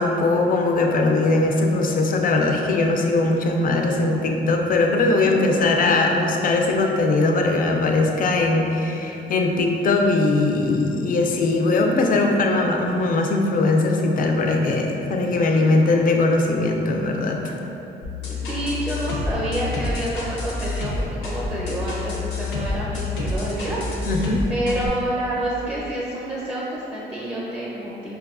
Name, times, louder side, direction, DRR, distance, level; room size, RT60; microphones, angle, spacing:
voice 1, 0.0-17.5 24.1-24.5, left 2 dB, 45° left, 2 dB, 0.4 m, -20 dB
voice 2, 5.2-5.7 15.5-15.6 18.3-23.8 24.1-28.1, right 1 dB, 5° right, -7 dB, 0.6 m, -28 dB
sound 1, 18.0-24.9, left 3 dB, 85° left, 0.6 m, -28 dB
4.5 x 2.3 x 2.4 m, 3.0 s
cardioid pair, 90°, 20 cm